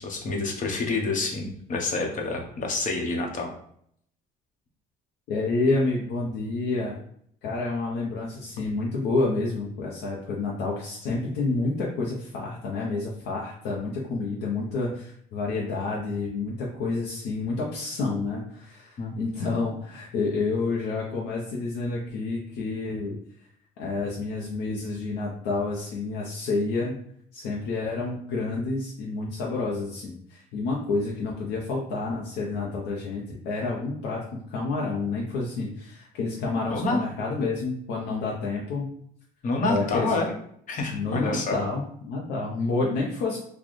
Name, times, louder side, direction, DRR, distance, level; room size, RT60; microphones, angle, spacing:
voice 1, 0.0-3.5 19.0-19.5 36.7-37.1 39.4-40.3 40.7-41.6, left 3 dB, 50° left, 1 dB, 1.0 m, -28 dB
voice 2, 5.3-7.0 7.4-23.1 23.8-27.0 27.3-38.9 39.6-40.1 40.9-43.4, left 3 dB, 85° left, -3 dB, 0.7 m, -29 dB
4.1 x 2.3 x 3.1 m, 0.67 s
cardioid pair, 110°, 17 cm